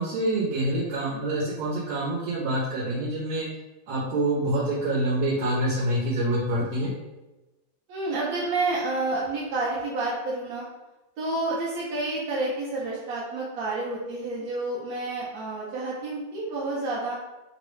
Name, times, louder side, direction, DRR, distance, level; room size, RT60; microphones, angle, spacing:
voice 1, 0.0-3.5 3.9-6.9, right 1 dB, 85° right, -5 dB, 1.5 m, -26 dB
voice 2, 7.9-10.6 11.2-17.1, right 2 dB, 70° right, -7 dB, 0.9 m, -29 dB
3.6 x 2.1 x 3.1 m, 1.1 s
omnidirectional pair, 2.2 m